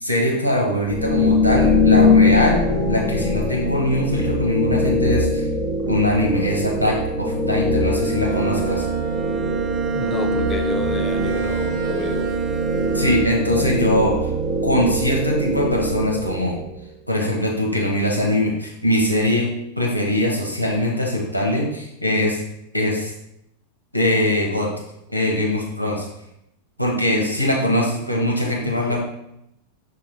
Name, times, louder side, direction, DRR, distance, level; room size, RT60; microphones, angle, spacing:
voice 1, 0.0-2.6 2.9-5.4 5.9-8.9 12.9-14.1 14.6-16.6 17.1-19.5 19.8-22.4 22.7-23.1 23.9-24.7 25.1-26.1 26.8-29.0, left 1 dB, 90° left, -2 dB, 0.9 m, -21 dB
sound 1, 0.9-16.7, left 2 dB, 5° right, 0.9 m, -22 dB
Bowed string instrument, 7.8-13.8, right 5 dB, 30° right, 0.5 m, -28 dB
voice 2, 9.9-12.3 28.7-29.0, left 5 dB, 25° left, 7 dB, 0.3 m, -31 dB
5.4 x 4.3 x 2.2 m, 0.81 s
figure-of-eight pair, 90°, 0 cm